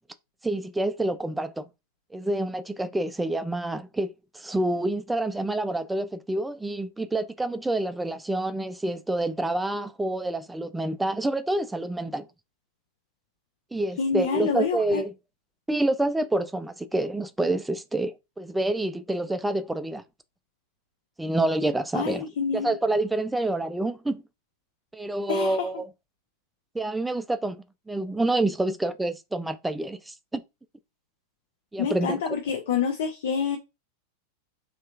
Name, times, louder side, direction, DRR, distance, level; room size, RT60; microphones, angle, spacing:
voice 1, 0.4-1.6 2.1-12.3 13.7-15.1 15.7-20.0 21.2-24.2 24.9-25.9 26.7-27.6 27.9-30.4 31.7-32.2, right 2 dB, 5° right, 0.3 m, -27 dB
voice 2, 14.0-15.0 21.9-22.7 25.3-25.7 31.8-33.6, left 6 dB, 55° left, 0.5 m, -27 dB
3.2 x 2.7 x 2.4 m
figure-of-eight pair, 90°, 0 cm